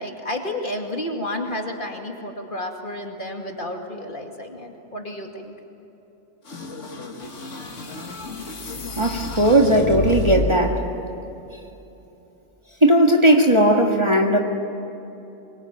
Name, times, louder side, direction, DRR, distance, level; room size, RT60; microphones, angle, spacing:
voice 1, 0.0-5.5, left 1 dB, 45° left, 2 dB, 2.5 m, -31 dB
sound 1, 6.5-10.8, left 2 dB, 80° left, 2.2 m, -30 dB
voice 2, 9.0-10.9 12.8-14.4, right 1 dB, 25° right, 1 dB, 1.9 m, -17 dB
24.5 x 23.0 x 9.0 m, 3.0 s
omnidirectional pair, 1.2 m